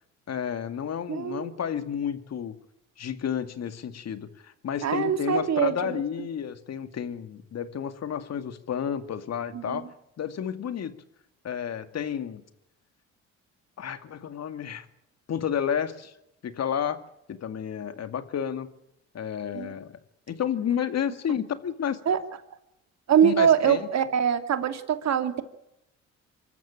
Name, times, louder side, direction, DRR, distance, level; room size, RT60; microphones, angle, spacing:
voice 1, 0.3-2.5 3.0-9.9 10.2-10.9 11.4-12.4 13.8-14.9 15.3-16.1 16.4-17.0 17.3-18.7 19.1-20.0 20.3-22.0 23.2-23.9, left 8 dB, 55° left, 10 dB, 2.3 m, -31 dB
voice 2, 1.1-1.5 4.8-6.0 9.5-9.8 19.5-19.7 22.1-22.2 23.1-25.4, right 8 dB, 60° right, 8 dB, 2.6 m, -23 dB
25.0 x 14.0 x 9.0 m, 0.81 s
supercardioid pair, 65°, 31 cm